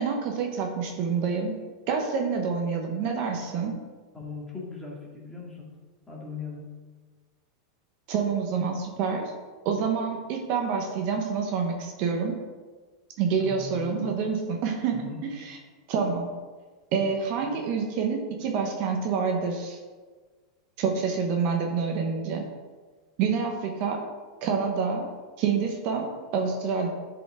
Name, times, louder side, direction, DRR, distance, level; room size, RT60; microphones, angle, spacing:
voice 1, 0.0-1.6 1.9-3.8 8.1-9.3 9.6-12.4 13.2-15.6 15.9-16.3 16.9-19.8 20.8-22.4 23.2-24.0 24.4-25.1 25.4-26.9, right 5 dB, 50° right, 2 dB, 1.1 m, -27 dB
voice 2, 4.1-5.7 6.1-6.6 13.4-14.1 14.9-15.2, left 4 dB, 10° left, -3 dB, 2.2 m, -39 dB
11.0 x 5.1 x 3.7 m, 1.4 s
supercardioid pair, 140°, 3 cm